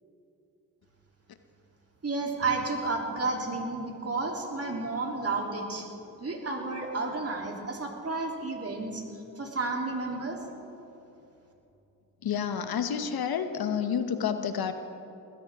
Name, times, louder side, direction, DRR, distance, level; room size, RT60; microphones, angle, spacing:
voice 1, 2.0-5.9 6.2-9.0 9.4-10.4, right 3 dB, 35° right, 0 dB, 3.4 m, -31 dB
voice 2, 12.2-14.7, left 7 dB, 65° left, 8 dB, 1.1 m, -29 dB
21.0 x 16.0 x 3.7 m, 2.9 s
supercardioid pair, 60°, 40 cm